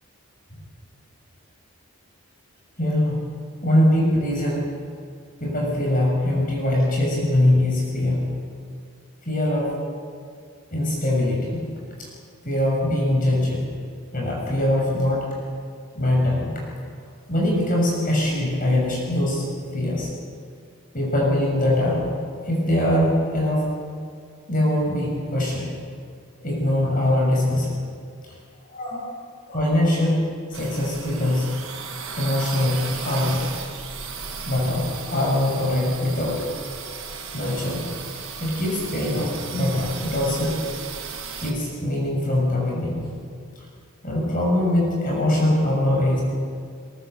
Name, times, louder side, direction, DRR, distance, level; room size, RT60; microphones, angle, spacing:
voice 1, 2.8-3.2 3.6-4.7 5.4-8.3 9.2-9.7 10.7-11.6 12.0-12.1 12.4-13.6 14.1-15.3 15.9-16.6 17.3-19.5 19.7-20.1 20.9-22.1 22.4-23.7 24.5-25.8 26.4-27.8 28.7-29.1 29.5-30.2 30.5-31.5 32.2-33.5 34.4-36.4 37.3-37.9 38.4-40.6 41.4-43.1 43.5-43.6 44.0-46.2, left 1 dB, 40° left, -3 dB, 6.6 m, -22 dB
sound 1, 30.5-41.5, right 5 dB, 65° right, 4.2 m, -35 dB
23.5 x 22.5 x 6.9 m, 2.1 s
head